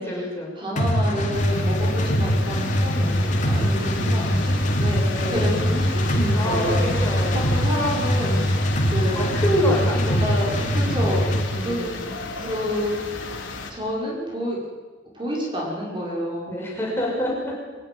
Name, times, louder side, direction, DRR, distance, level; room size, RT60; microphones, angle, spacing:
voice 1, 0.0-0.6 3.6-4.4 5.1-5.6 6.3-7.6 9.1-10.6 11.5-12.2 16.5-17.6, equal, 15° left, -3 dB, 6.1 m, -27 dB
voice 2, 0.6-9.4 9.8-11.9 12.4-13.0 13.7-14.6 15.1-16.5, equal, 25° right, -3 dB, 5.6 m, -29 dB
sound 1, 0.8-11.5, equal, 40° left, 2.8 m, -22 dB
sound 2, 1.3-13.7, left 3 dB, 85° left, 3.5 m, -33 dB
24.5 x 14.0 x 9.8 m, 1.4 s
head